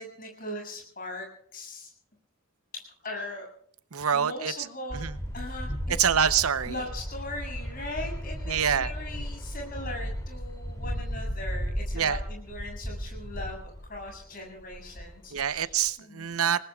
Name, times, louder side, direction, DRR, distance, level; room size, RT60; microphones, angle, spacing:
voice 1, 0.0-1.9 2.7-3.5 4.1-5.0 5.3-5.7 6.0-6.1 6.7-15.6 16.0-16.3, left 1 dB, 40° left, 1 dB, 7.1 m, -39 dB
voice 2, 3.9-4.5 4.9-5.2 6.0-6.8 8.5-8.9 11.9-12.2 15.3-16.7, right 8 dB, 85° right, 14 dB, 0.8 m, -26 dB
sound 1, 4.9-14.3 14.6-15.9, equal, 15° left, 2.8 m, -35 dB
27.5 x 19.5 x 2.4 m, 0.63 s
head